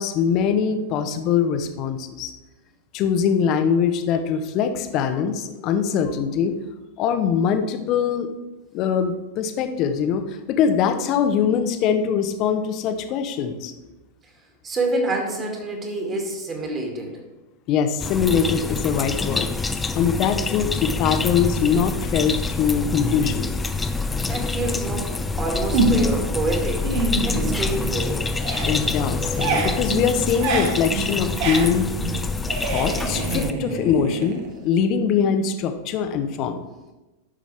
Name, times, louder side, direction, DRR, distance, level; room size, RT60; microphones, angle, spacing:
voice 1, 0.0-2.3 2.9-6.6 7.0-8.3 8.7-13.7 17.7-19.5 19.9-23.5 28.7-31.9 32.6-36.6, left 7 dB, 40° left, 8 dB, 0.8 m, -22 dB
voice 2, 14.6-17.2 24.3-28.3, right 2 dB, 25° right, 1 dB, 2.3 m, -27 dB
sound 1, 18.0-33.5, left 3 dB, 10° left, 0.6 m, -26 dB
sound 2, 25.7-26.3 26.7-28.0 28.3-34.8, right 3 dB, 45° right, 1.5 m, -26 dB
12.0 x 6.3 x 3.5 m, 1.1 s
figure-of-eight pair, 90°, 0 cm